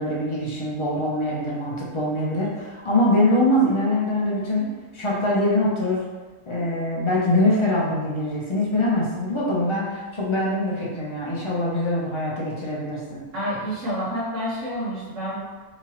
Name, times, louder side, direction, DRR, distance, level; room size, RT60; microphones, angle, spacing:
voice 1, 0.0-4.7 4.9-6.0 6.5-13.2, left 1 dB, 35° left, -5 dB, 0.5 m, -23 dB
voice 2, 13.3-15.4, equal, 55° right, -8 dB, 1.6 m, -28 dB
3.6 x 3.0 x 2.9 m, 1.3 s
omnidirectional pair, 1.6 m